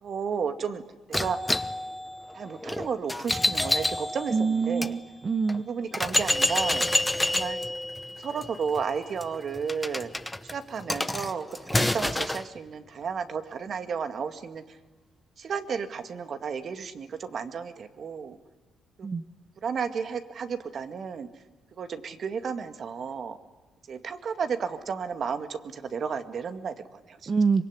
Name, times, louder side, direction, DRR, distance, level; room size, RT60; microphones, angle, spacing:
voice 1, 0.0-0.8 1.1-1.4 2.3-5.0 5.6-6.9 7.3-7.7 8.1-10.1 10.5-14.8 15.4-18.4 19.0-19.1 19.6-21.3 21.7-23.4 23.9-27.3, right 6 dB, 55° right, 8 dB, 2.2 m, -33 dB
sound 1, 1.1-4.9 5.5-5.6 5.9-12.5, left 1 dB, 10° left, 1.0 m, -28 dB
voice 2, 4.3-5.7 19.0-19.2 27.3-27.6, right 5 dB, 35° right, 10 dB, 1.0 m, -25 dB
24.5 x 23.0 x 9.8 m, 1.2 s
cardioid pair, 90°, 0 cm